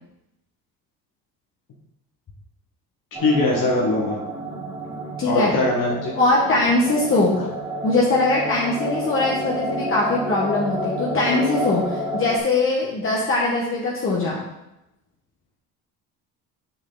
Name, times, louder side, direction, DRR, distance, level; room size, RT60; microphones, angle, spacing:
voice 1, 3.1-4.2 5.2-6.1, left 2 dB, 60° left, -3 dB, 1.6 m, -21 dB
sound 1, 3.1-12.4, equal, 15° right, 1.6 m, -30 dB
voice 2, 5.2-5.5 6.1-7.4 7.8-14.4, left 2 dB, 35° left, -4 dB, 1.4 m, -21 dB
6.5 x 6.1 x 4.0 m, 0.88 s
cardioid pair, 130°, 36 cm